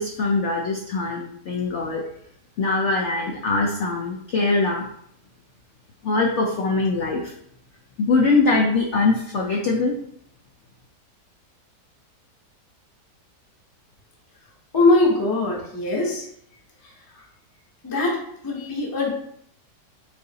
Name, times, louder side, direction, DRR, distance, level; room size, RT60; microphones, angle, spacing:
voice 1, 0.0-2.0 2.6-4.9 6.0-7.3 8.0-9.9, left 3 dB, 75° left, 0 dB, 0.6 m, -22 dB
voice 2, 14.7-16.2 16.8-16.9 17.8-18.2 18.4-19.1, left 2 dB, 25° left, -2 dB, 0.4 m, -21 dB
3.9 x 2.7 x 3.9 m, 0.69 s
omnidirectional pair, 1.8 m